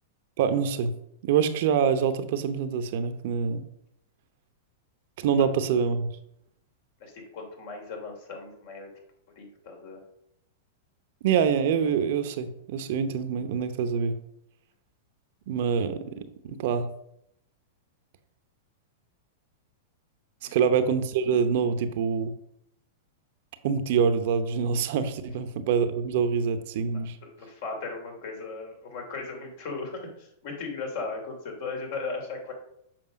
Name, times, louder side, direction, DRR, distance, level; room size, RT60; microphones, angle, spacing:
voice 1, 0.4-0.9 1.2-3.6 5.2-6.1 11.2-14.1 15.5-16.9 20.5-22.3 23.6-27.2, right 6 dB, 60° right, 9 dB, 0.9 m, -25 dB
voice 2, 7.0-8.9 9.4-10.0 20.4-20.6 27.2-32.5, left 4 dB, 60° left, 1 dB, 3.0 m, -37 dB
7.7 x 5.3 x 5.2 m, 0.74 s
hypercardioid pair, 110°, 0 cm